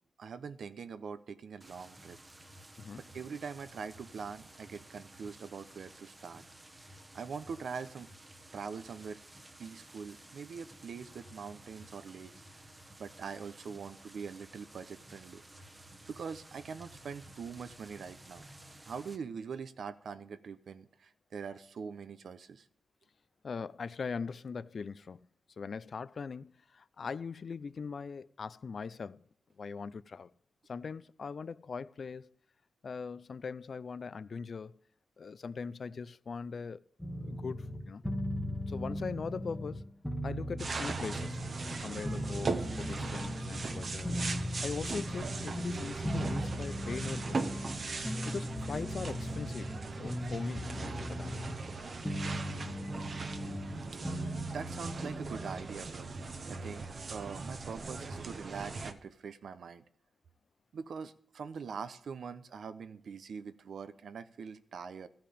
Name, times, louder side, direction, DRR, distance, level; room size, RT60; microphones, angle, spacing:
voice 1, 0.2-2.2 3.1-6.4 7.1-8.1 8.5-9.2 9.6-12.3 13.0-15.4 16.1-18.5 18.8-22.7 54.5-56.1 56.5-56.8 57.1-59.8 60.7-65.1, right 6 dB, 70° right, 0.9 m, -43 dB
sound 1, 1.6-19.2, right 1 dB, 15° right, 1.1 m, -54 dB
voice 2, 23.4-25.2 25.6-29.2 29.6-30.3 30.7-32.3 32.8-34.7 35.2-36.8 37.2-38.0 38.7-39.8 40.2-44.1 44.6-47.5 48.3-51.4, left 5 dB, 50° left, 0.4 m, -41 dB
sound 2, 37.0-55.5, equal, 5° left, 1.2 m, -38 dB
sound 3, 40.6-58.9, right 3 dB, 45° right, 1.2 m, -39 dB
14.5 x 5.8 x 8.5 m
wide cardioid pair, 125°, 0 cm